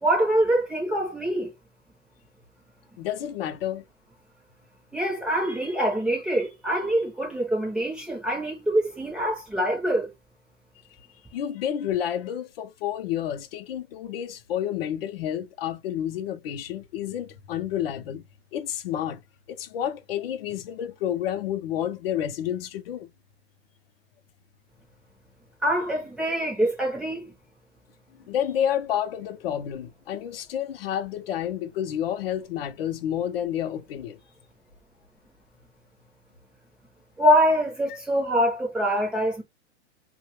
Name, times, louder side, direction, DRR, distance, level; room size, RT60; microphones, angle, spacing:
voice 1, 0.0-1.5 4.9-10.1 25.6-27.3 37.2-39.4, equal, ahead, 0.6 m, -24 dB
voice 2, 3.0-3.8 11.3-18.3 18.5-19.2 19.5-23.1 28.3-34.2, left 10 dB, 55° left, 0.6 m, -30 dB
3.1 x 2.2 x 2.9 m
hypercardioid pair, 150°, 36 cm